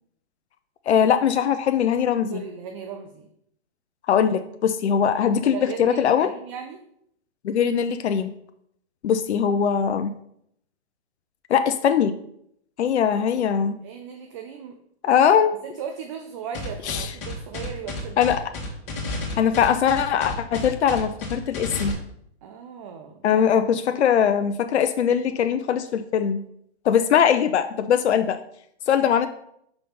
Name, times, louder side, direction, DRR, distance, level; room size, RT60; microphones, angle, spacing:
voice 1, 0.9-2.4 4.1-6.3 7.4-8.3 9.0-10.1 11.5-12.2 12.8-13.8 15.0-15.5 16.9-17.1 18.2-18.4 19.4-22.0 23.2-26.4 26.8-28.4 28.9-29.3, left 8 dB, 80° left, 9 dB, 0.6 m, -21 dB
voice 2, 2.3-3.3 5.5-6.8 13.8-14.8 15.6-18.3 22.4-23.4, right 7 dB, 30° right, 4 dB, 0.5 m, -37 dB
sound 1, 16.5-21.9, left 2 dB, 30° left, 1.6 m, -31 dB
5.9 x 3.4 x 5.4 m, 0.71 s
hypercardioid pair, 140°, 33 cm